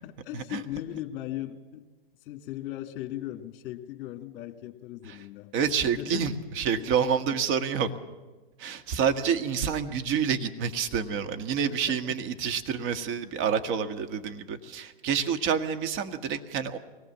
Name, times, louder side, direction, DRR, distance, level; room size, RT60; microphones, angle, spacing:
voice 1, 0.0-1.9 2.2-5.5 6.0-6.3 6.8-6.9 7.3-7.4 11.7-12.2, left 14 dB, 40° left, 8 dB, 1.9 m, -38 dB
voice 2, 5.5-7.9 8.6-16.8, right 7 dB, 40° right, 8 dB, 1.7 m, -28 dB
23.5 x 18.5 x 7.4 m, 1.2 s
hypercardioid pair, 115°, 30 cm